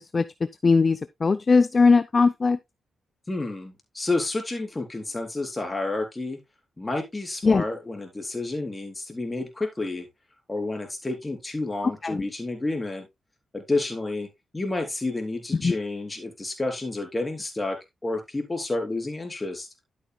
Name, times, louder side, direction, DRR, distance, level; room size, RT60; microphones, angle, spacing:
voice 1, 0.6-2.6 7.4-7.6 12.0-12.2 15.6-15.8, left 4 dB, 40° left, 0.4 m, -19 dB
voice 2, 3.3-6.4 6.8-10.1 10.5-13.1 13.5-14.3 14.5-17.8 18.0-19.7, left 2 dB, 20° left, 4.0 m, -30 dB
12.0 x 8.2 x 2.3 m
cardioid pair, 65°, 0 cm